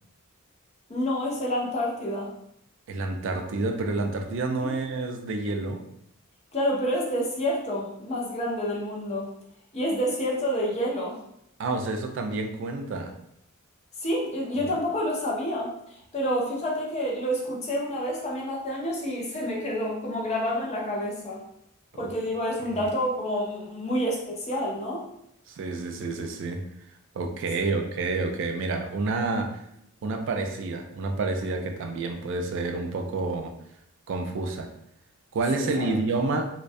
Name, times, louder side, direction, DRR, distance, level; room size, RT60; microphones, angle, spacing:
voice 1, 0.9-2.3 4.6-4.7 6.5-9.3 9.7-11.2 14.0-15.7 16.1-21.4 22.0-25.1 27.6-27.7 35.6-36.0, equal, 30° left, -3 dB, 0.6 m, -28 dB
voice 2, 2.9-5.8 11.6-13.1 14.6-14.7 21.9-22.0 22.7-22.9 25.5-26.6 27.1-29.5 30.0-33.5 34.1-34.7 35.3-36.5, right 3 dB, 60° right, 5 dB, 0.3 m, -29 dB
2.3 x 2.1 x 2.5 m, 0.75 s
head